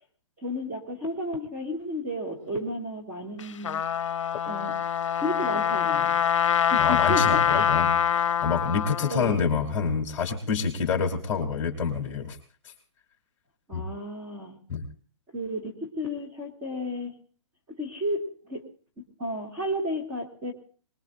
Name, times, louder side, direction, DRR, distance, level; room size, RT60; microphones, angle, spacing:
voice 1, 0.4-3.8 4.4-4.7 5.2-6.2 6.7-7.7 9.1-9.4 13.7-14.6 15.3-17.1 17.7-18.6 19.0-20.5, left 1 dB, 15° right, -1 dB, 2.1 m, -32 dB
Trumpet, 3.4-9.3, left 8 dB, 70° left, 0.6 m, -24 dB
voice 2, 6.8-12.4 13.7-13.8 14.7-14.8, left 5 dB, 15° left, 3 dB, 2.5 m, -27 dB
23.5 x 21.0 x 2.5 m, 0.42 s
hypercardioid pair, 175°, 16 cm